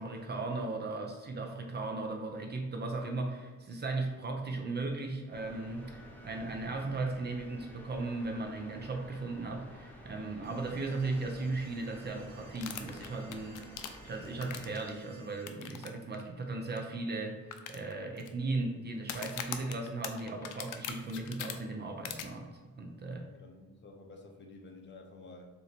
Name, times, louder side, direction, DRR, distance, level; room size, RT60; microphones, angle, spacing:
voice 1, 0.0-13.7 14.0-17.4 17.7-22.5 22.8-23.2, right 3 dB, 35° right, 2 dB, 0.7 m, -37 dB
sound 1, 5.3-14.7, equal, 5° left, 0.9 m, -52 dB
sound 2, 10.4-15.4, right 2 dB, 80° right, 1.3 m, -59 dB
sound 3, 12.6-14.9 15.5-15.9 16.1-16.2 16.8-16.9 17.5-18.3 19.0-21.5 22.0-22.2, left 9 dB, 85° left, 0.5 m, -41 dB
voice 2, 23.0-25.4, left 3 dB, 40° left, 3 dB, 0.7 m, -51 dB
3.8 x 2.8 x 4.3 m, 1.3 s
cardioid pair, 90°, 30 cm